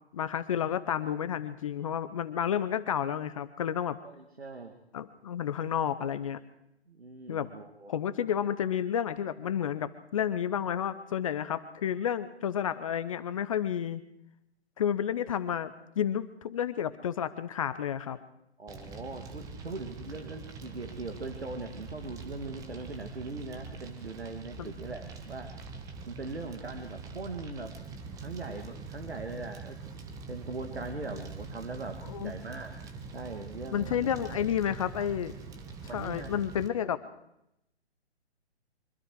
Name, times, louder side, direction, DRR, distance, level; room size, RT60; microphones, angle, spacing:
voice 1, 0.1-4.0 4.9-6.4 7.3-7.5 7.9-14.0 14.8-18.2 24.6-24.7 32.0-32.3 33.7-35.3 35.9-37.0, left 9 dB, 30° left, 13 dB, 0.9 m, -31 dB
voice 2, 4.0-4.7 6.9-7.9 18.6-25.5 26.1-27.7 28.2-29.8 30.3-32.8 33.1-34.3 35.9-36.5, right 3 dB, 70° right, 5 dB, 2.5 m, -40 dB
Fire, 18.7-36.7, right 4 dB, 10° right, 1.2 m, -44 dB
24.5 x 24.5 x 4.8 m, 0.81 s
figure-of-eight pair, 130°, 33 cm